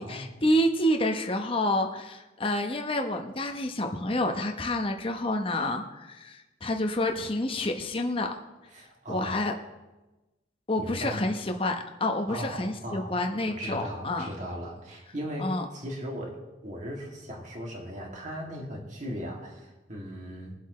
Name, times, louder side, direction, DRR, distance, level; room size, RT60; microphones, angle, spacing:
voice 1, 0.0-8.3 9.1-9.5 10.7-14.3 15.4-15.6, left 1 dB, 30° left, 4 dB, 0.9 m, -28 dB
voice 2, 8.7-9.4 10.8-11.2 12.3-16.4 16.6-20.5, equal, 40° right, -1 dB, 2.5 m, -38 dB
23.0 x 7.9 x 3.2 m, 1.1 s
head